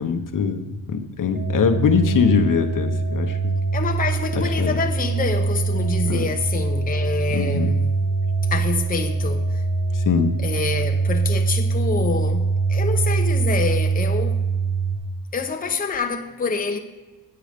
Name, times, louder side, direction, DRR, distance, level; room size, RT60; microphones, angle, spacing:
voice 1, 0.0-3.5 4.6-4.7 6.1-6.3 7.3-7.7 9.9-10.3, left 6 dB, 55° left, 1.0 m, -22 dB
sound 1, 1.3-15.0, right 4 dB, 45° right, 1.2 m, -23 dB
voice 2, 3.7-7.9 8.5-9.6 10.4-14.6 15.3-16.8, left 5 dB, 20° left, 0.9 m, -27 dB
9.1 x 7.8 x 5.1 m
cardioid pair, 110°, 38 cm